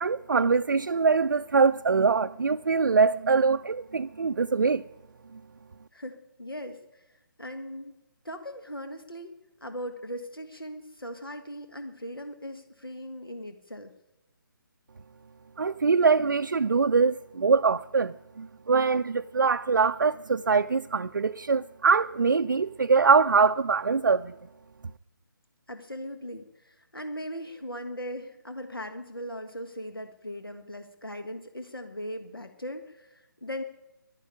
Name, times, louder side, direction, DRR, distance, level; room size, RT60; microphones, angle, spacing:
voice 1, 0.0-4.8 5.3-5.4 15.6-24.3, right 5 dB, 60° right, 0.5 m, -23 dB
voice 2, 5.9-7.0 7.4-8.0 8.2-13.9 25.7-33.6, equal, 85° left, 1.5 m, -39 dB
11.5 x 11.0 x 9.9 m
figure-of-eight pair, 145°, 12 cm